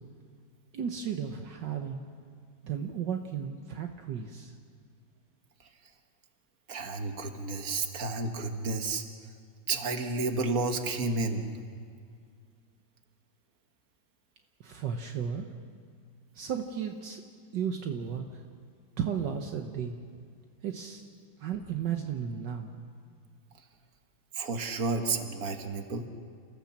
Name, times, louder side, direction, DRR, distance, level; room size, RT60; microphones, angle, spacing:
voice 1, 0.7-2.0 2.6-4.5 14.6-15.5 16.3-17.2 17.5-18.4 19.0-20.0 20.6-21.0 21.4-22.7, right 7 dB, 70° right, 4 dB, 1.7 m, -34 dB
voice 2, 6.7-9.0 9.7-11.4 24.4-26.0, right 3 dB, 50° right, 5 dB, 1.9 m, -31 dB
29.5 x 15.0 x 7.3 m, 2.1 s
omnidirectional pair, 2.0 m